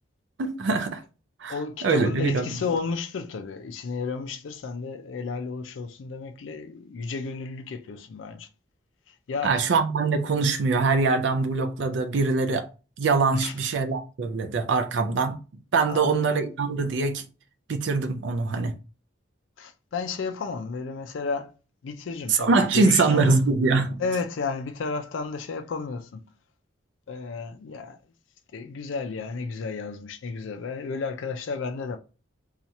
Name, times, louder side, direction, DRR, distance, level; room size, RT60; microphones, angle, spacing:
voice 1, 0.4-1.0 1.4-1.5 1.8-2.4 9.4-12.7 13.0-15.4 15.7-17.2 17.7-18.7 22.3-24.0, right 4 dB, 65° right, 0.4 m, -23 dB
voice 2, 1.5-8.5 9.1-9.7 13.3-13.5 15.9-16.2 19.6-21.5 21.8-23.4 24.0-26.2 27.1-28.0 28.5-32.0, left 4 dB, 75° left, 0.4 m, -32 dB
2.8 x 2.4 x 4.1 m
head